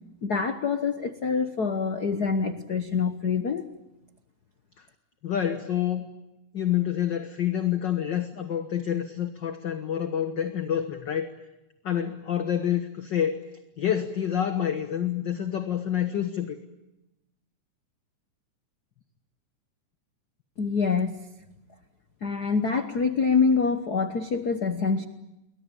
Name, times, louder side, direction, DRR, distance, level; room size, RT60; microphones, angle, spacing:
voice 1, 0.2-3.7 20.6-21.2 22.2-25.1, left 5 dB, 80° left, 9 dB, 0.8 m, -25 dB
voice 2, 5.2-6.1 6.5-11.3 11.8-13.4 13.8-16.6, left 10 dB, 50° left, 7 dB, 1.5 m, -27 dB
30.0 x 22.0 x 9.0 m, 0.94 s
omnidirectional pair, 3.6 m